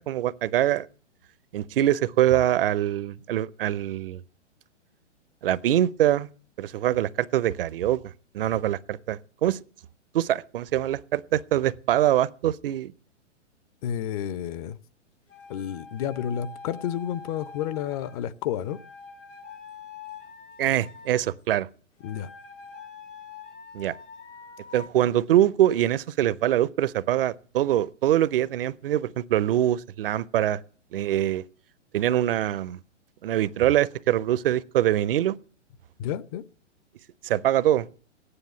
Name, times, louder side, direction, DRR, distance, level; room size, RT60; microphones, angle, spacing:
voice 1, 0.1-0.9 1.5-4.2 5.4-6.3 6.6-9.6 10.1-12.9 20.6-21.7 23.7-23.9 24.7-30.6 30.9-31.4 31.9-32.8 33.2-35.4 37.2-37.9, right 12 dB, 50° right, 0.7 m, -24 dB
voice 2, 13.8-14.8 15.5-18.8 22.0-22.3 36.0-36.4, left 10 dB, 30° left, 0.6 m, -30 dB
sound 1, 15.3-18.2 18.6-21.3 22.0-24.9, left 5 dB, 80° left, 3.9 m, -45 dB
14.5 x 9.8 x 9.2 m
hypercardioid pair, 125°, 36 cm